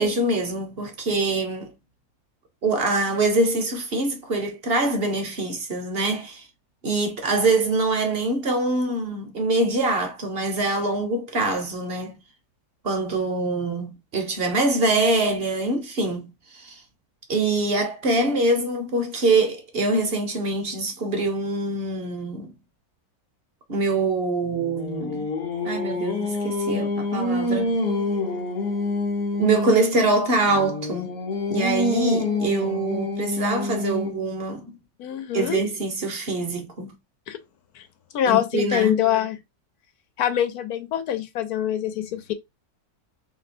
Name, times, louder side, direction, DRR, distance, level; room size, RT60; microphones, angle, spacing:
voice 1, 0.0-1.7 2.6-6.5 6.8-12.2 12.8-16.8 17.3-22.5 23.7-25.3 25.6-27.8 29.4-31.1 31.5-34.7 35.3-36.9 38.3-39.0, right 2 dB, 45° right, 1.0 m, -24 dB
Singing, 24.4-29.8 30.5-34.3, left 2 dB, 50° left, 1.0 m, -27 dB
voice 2, 35.0-35.6 37.3-37.4 37.8-37.9 38.1-39.4 40.2-42.3, left 11 dB, 80° left, 1.2 m, -24 dB
3.1 x 2.9 x 4.2 m
omnidirectional pair, 1.6 m